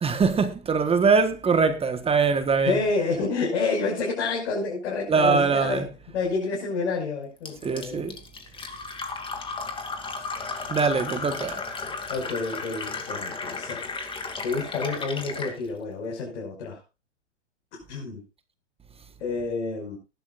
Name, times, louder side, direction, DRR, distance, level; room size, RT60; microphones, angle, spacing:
voice 1, 0.0-2.8 5.1-5.9 7.6-8.1 10.7-11.6, right 5 dB, 15° right, 1.3 m, -22 dB
voice 2, 2.7-5.8 6.1-8.0 12.1-13.9 14.4-16.8 17.9-18.2 19.2-20.0, left 4 dB, 65° left, 5.8 m, -29 dB
Fill (with liquid), 7.5-15.6, left 4 dB, 15° left, 2.4 m, -34 dB
19.0 x 11.5 x 2.5 m
hypercardioid pair, 115°, 36 cm